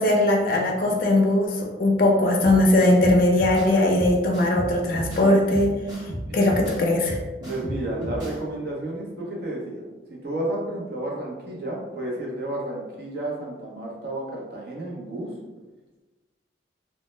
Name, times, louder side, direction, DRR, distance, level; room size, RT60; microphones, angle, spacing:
voice 1, 0.0-5.7 6.3-7.2, left 1 dB, 50° left, 0 dB, 0.4 m, -20 dB
sound 1, 2.4-8.4, right 1 dB, 25° right, 0.8 m, -34 dB
voice 2, 7.4-9.8 10.1-15.4, right 1 dB, 55° right, -3 dB, 0.6 m, -31 dB
2.1 x 2.0 x 3.0 m, 1.2 s
head